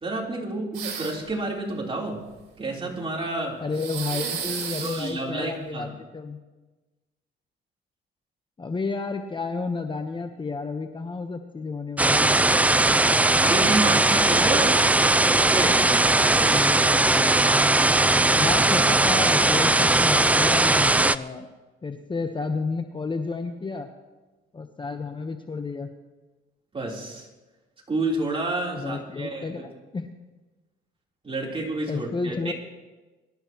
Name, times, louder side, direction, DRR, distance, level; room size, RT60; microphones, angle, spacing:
voice 1, 0.0-2.2 2.6-3.6 4.8-5.9 13.4-14.9 15.3-15.8 26.7-27.3 27.9-29.6 31.2-32.5, right 2 dB, 25° right, -1 dB, 3.5 m, -29 dB
sound 1, 0.7-1.3 3.7-5.1, right 7 dB, 75° right, 3.7 m, -32 dB
voice 2, 3.6-6.4 8.6-12.4 16.3-17.7 18.4-21.5 21.8-23.9 24.5-25.9 28.8-30.1 31.9-32.5, left 4 dB, 25° left, 6 dB, 0.9 m, -31 dB
sound 2, 12.0-21.2, right 2 dB, 5° right, 0.3 m, -19 dB
23.5 x 12.0 x 3.0 m, 1.2 s
cardioid pair, 95°, 21 cm